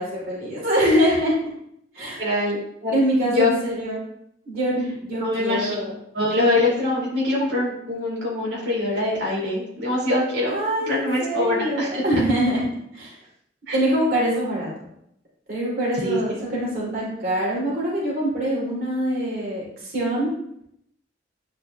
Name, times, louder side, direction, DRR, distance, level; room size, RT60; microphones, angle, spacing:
voice 1, 0.0-1.3 1.9-2.2 2.9-4.0 4.5-5.9 10.5-12.6 12.9-13.2 13.7-14.7 15.5-20.3, right 1 dB, 55° right, -6 dB, 2.7 m, -24 dB
voice 2, 2.2-2.9 3.2-3.5 5.2-5.7 6.1-10.6 10.9-12.2 13.7-13.8 16.0-16.4, left 2 dB, 80° right, -6 dB, 2.3 m, -24 dB
10.0 x 4.7 x 2.2 m, 0.74 s
head